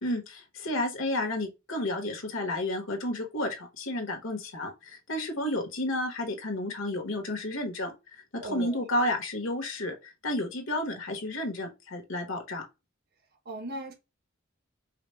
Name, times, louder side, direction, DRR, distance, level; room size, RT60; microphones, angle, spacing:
voice 1, 0.0-7.9 8.3-12.6, left 1 dB, 70° left, 1.3 m, -31 dB
voice 2, 8.4-8.8 13.4-13.9, right 2 dB, 50° right, 1.2 m, -37 dB
4.9 x 2.2 x 3.2 m
head